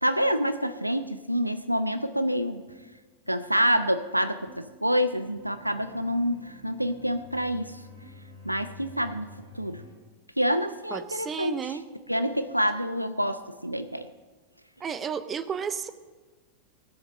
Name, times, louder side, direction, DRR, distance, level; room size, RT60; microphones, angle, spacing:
voice 1, 0.0-2.6 3.3-7.7 8.4-9.3 9.6-9.8 10.4-11.6 12.1-14.1, equal, 90° right, 12 dB, 0.5 m, -27 dB
sound 1, 1.9-9.9, left 1 dB, 80° left, 3.8 m, -50 dB
voice 2, 10.9-11.9 14.8-15.9, right 7 dB, 20° right, 13 dB, 0.7 m, -32 dB
18.0 x 7.4 x 6.8 m, 1.3 s
figure-of-eight pair, 90°, 0 cm